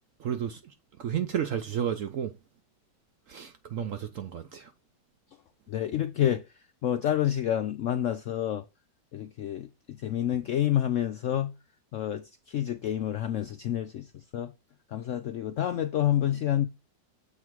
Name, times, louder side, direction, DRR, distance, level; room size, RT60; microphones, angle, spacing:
voice 1, 0.2-0.6 1.0-2.3 3.3-4.7, right 9 dB, 65° right, 0.8 m, -32 dB
voice 2, 5.7-6.4 6.8-8.6 9.1-9.7 10.0-11.5 11.9-12.2 12.5-14.0 14.3-14.5 14.9-16.7, left 11 dB, 85° left, 0.6 m, -28 dB
7.3 x 3.7 x 4.6 m
omnidirectional pair, 1.9 m